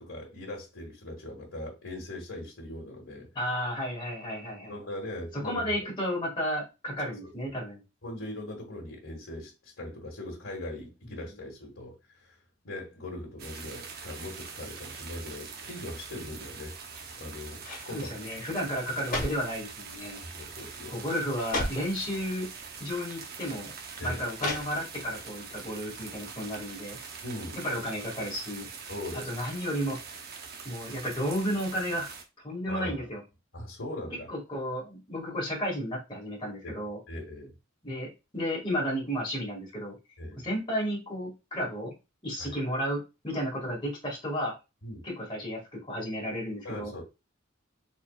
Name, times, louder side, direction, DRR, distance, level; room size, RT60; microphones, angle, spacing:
voice 1, 0.0-3.3 4.7-5.6 7.1-7.3 8.0-12.3 12.6-16.8 17.2-18.1 20.2-21.0 24.0-24.3 27.2-27.6 28.9-29.4 32.7-33.1 33.5-34.3 36.6-36.8 37.1-37.5 40.2-40.4 42.4-42.6 44.8-45.0 46.6-47.0, left 1 dB, 80° left, 1.6 m, -40 dB
voice 2, 3.4-4.7 5.3-7.8 11.0-11.2 17.9-20.2 20.9-22.5 22.8-23.7 24.0-27.0 27.6-28.7 29.1-30.0 30.7-32.1 32.4-33.2 34.3-37.0 37.8-40.0 40.4-41.9 42.2-44.5 45.0-46.9, equal, 25° left, 1.9 m, -33 dB
Steady rain in Zeist, 13.4-32.2, right 5 dB, 50° right, 0.8 m, -43 dB
sound 1, 16.7-17.2 17.6-17.9 18.7-19.6 20.4-20.6 20.9-21.0 21.4-21.9 22.9-23.0 24.3-25.1 25.5-25.6, left 1 dB, 45° left, 1.8 m, -35 dB
4.1 x 4.0 x 2.3 m
head